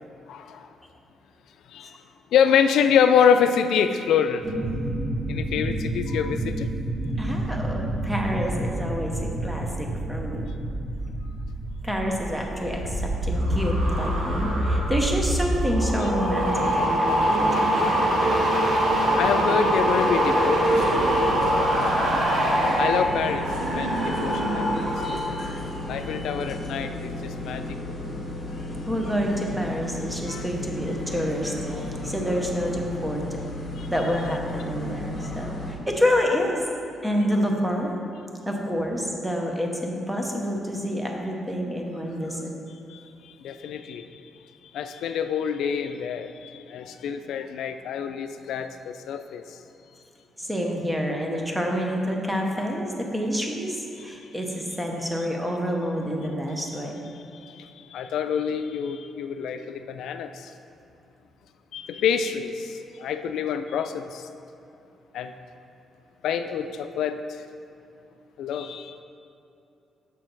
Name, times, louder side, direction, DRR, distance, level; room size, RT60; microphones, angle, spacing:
voice 1, 0.3-0.7 1.7-1.9 2.3-4.4 5.3-6.7 19.2-21.0 22.8-23.5 23.7-24.7 25.9-27.6 30.3-30.4 33.8-33.9 42.9-43.0 43.4-44.2 44.7-49.4 57.1-57.7 57.9-60.5 61.7-64.2 65.1-65.3 66.2-67.2 68.4-69.0, left 7 dB, 85° left, 9 dB, 0.3 m, -26 dB
sound 1, 4.4-13.0, right 1 dB, 25° right, 1.2 m, -30 dB
voice 2, 7.2-10.5 11.8-18.1 28.8-33.2 33.9-36.6 37.0-37.9 38.4-42.5 50.4-57.0, equal, 5° right, 0 dB, 0.8 m, -28 dB
sound 2, 12.6-25.3 25.6-26.0, right 1 dB, 80° right, 1.6 m, -23 dB
sound 3, 20.6-35.7, left 1 dB, 35° left, 1.2 m, -34 dB
6.4 x 6.4 x 4.0 m, 2.7 s
cardioid pair, 155°, 0 cm